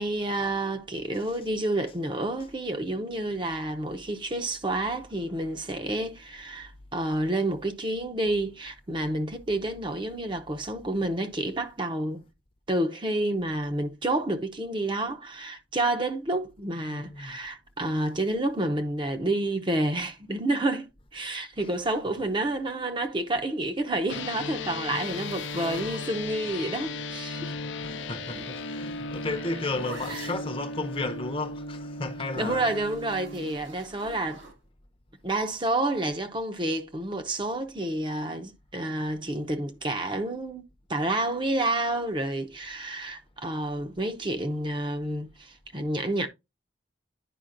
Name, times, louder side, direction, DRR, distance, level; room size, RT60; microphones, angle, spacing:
voice 1, 0.0-12.2 12.7-27.5 30.1-30.3 32.3-34.4 35.2-40.6 40.9-46.3, right 1 dB, 25° right, 0.6 m, -29 dB
voice 2, 16.9-17.4 25.7-25.8 27.8-32.7, left 2 dB, 30° left, 0.7 m, -33 dB
sound 1, 24.1-33.6, left 3 dB, 75° left, 0.6 m, -36 dB
sound 2, 24.9-26.7 27.9-30.6 32.3-34.6, right 2 dB, 75° right, 2.0 m, -46 dB
10.0 x 5.0 x 2.5 m
head